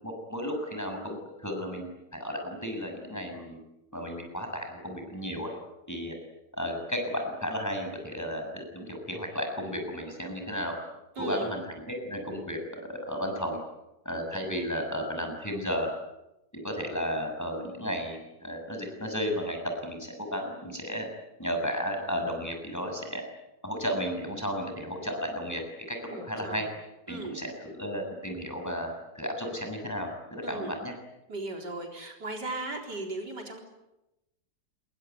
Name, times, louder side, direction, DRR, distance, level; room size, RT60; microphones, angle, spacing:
voice 1, 0.0-3.6 3.9-5.5 5.9-6.1 6.6-10.7 11.2-13.6 14.0-15.9 16.5-21.1 21.4-23.2 23.6-25.6 25.9-26.7 27.1-30.9, equal, 10° left, 3 dB, 6.8 m, -33 dB
voice 2, 11.2-11.5 26.1-26.7 27.1-27.4 30.4-30.7 31.3-33.6, right 2 dB, 70° right, 2 dB, 4.6 m, -37 dB
27.0 x 22.5 x 9.4 m, 0.94 s
omnidirectional pair, 1.9 m